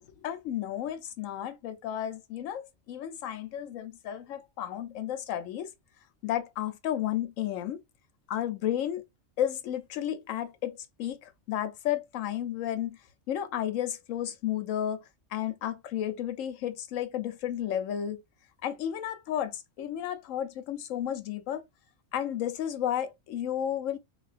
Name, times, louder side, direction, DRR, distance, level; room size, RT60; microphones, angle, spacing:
voice 1, 0.2-5.7 6.2-7.8 8.3-9.0 9.4-13.0 13.3-15.0 15.3-18.2 18.6-21.6 22.1-24.0, left 11 dB, 85° left, 1.0 m, -32 dB
4.0 x 2.4 x 2.4 m
omnidirectional pair, 1.3 m